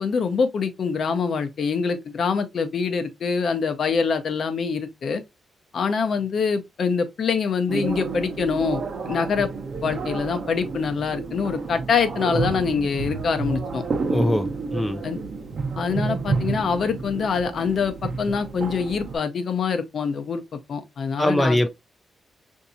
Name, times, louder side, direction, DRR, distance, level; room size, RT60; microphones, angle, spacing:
voice 1, 0.0-5.2 5.7-9.5 9.8-13.8 15.0-15.2 15.8-21.7, left 5 dB, 55° left, 0.7 m, -25 dB
sound 1, 7.7-19.2, right 4 dB, 50° right, 0.9 m, -30 dB
voice 2, 14.1-15.0 21.2-21.7, left 1 dB, 5° left, 0.4 m, -22 dB
5.8 x 2.7 x 2.6 m
wide cardioid pair, 140°, 0 cm